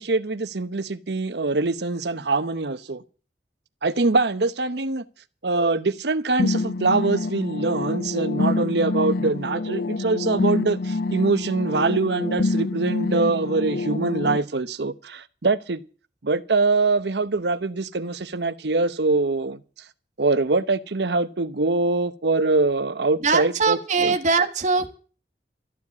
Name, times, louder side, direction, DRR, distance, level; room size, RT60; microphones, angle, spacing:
voice 1, 0.0-3.0 3.8-5.0 5.4-15.8 16.2-19.6 20.2-24.1, right 3 dB, 70° right, 0.9 m, -23 dB
sound 1, 6.4-14.4, left 3 dB, 60° left, 0.6 m, -26 dB
voice 2, 23.2-24.9, right 4 dB, 45° right, 1.6 m, -21 dB
13.5 x 7.4 x 9.5 m
head